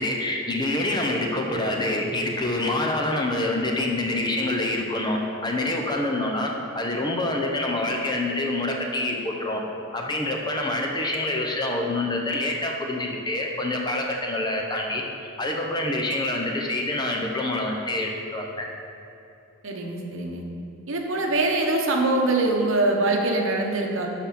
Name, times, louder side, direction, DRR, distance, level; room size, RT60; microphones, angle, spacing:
voice 1, 0.0-9.6 9.9-15.0 15.4-18.7, left 2 dB, 20° left, 1 dB, 0.8 m, -26 dB
voice 2, 19.6-20.4 20.9-24.1, right 2 dB, 65° right, 1 dB, 1.1 m, -23 dB
12.0 x 4.3 x 5.9 m, 2.8 s
head